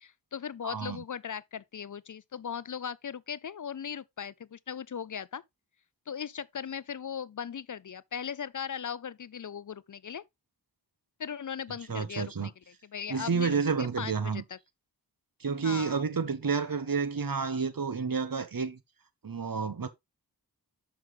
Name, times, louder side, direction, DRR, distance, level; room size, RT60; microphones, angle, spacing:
voice 1, 0.0-5.4 6.1-10.2 11.2-12.5 12.8-14.6 15.6-16.0, left 7 dB, 50° left, 0.5 m, -38 dB
voice 2, 0.6-1.0 11.9-12.5 13.1-14.4 15.4-18.8 19.2-19.9, right 5 dB, 60° right, 1.3 m, -30 dB
6.5 x 6.0 x 3.5 m
wide cardioid pair, 45°, 40 cm